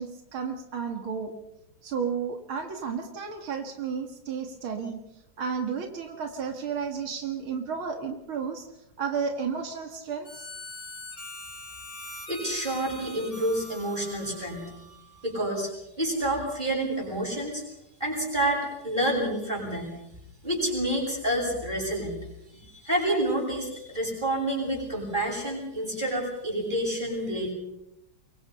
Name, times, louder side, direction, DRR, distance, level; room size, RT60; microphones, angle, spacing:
voice 1, 0.0-1.3 1.8-5.0 5.4-8.7 9.0-10.5, right 6 dB, 90° right, 4 dB, 2.9 m, -32 dB
Harmonica, 10.2-15.4, left 1 dB, 45° left, 4.2 m, -43 dB
voice 2, 12.3-14.7 15.2-15.7 16.0-17.6 18.0-20.0 20.4-22.2 22.5-27.5, right 1 dB, 20° right, -1 dB, 8.2 m, -28 dB
25.0 x 23.0 x 5.6 m, 0.86 s
omnidirectional pair, 2.2 m